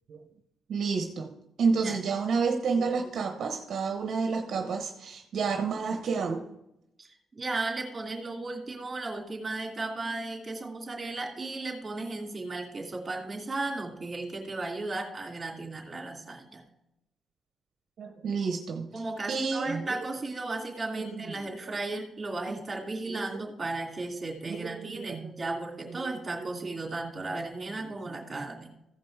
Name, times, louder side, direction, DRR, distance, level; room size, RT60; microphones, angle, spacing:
voice 1, 0.7-1.3 1.6-6.4 18.0-19.9 20.9-21.7 23.1-23.3 24.5-25.5 26.0-26.5 28.1-28.2, right 5 dB, 65° right, 5 dB, 1.0 m, -30 dB
voice 2, 7.0-16.6 18.9-28.7, right 2 dB, 30° right, 2 dB, 2.6 m, -35 dB
15.5 x 5.3 x 4.7 m, 0.85 s
cardioid pair, 95°, 0 cm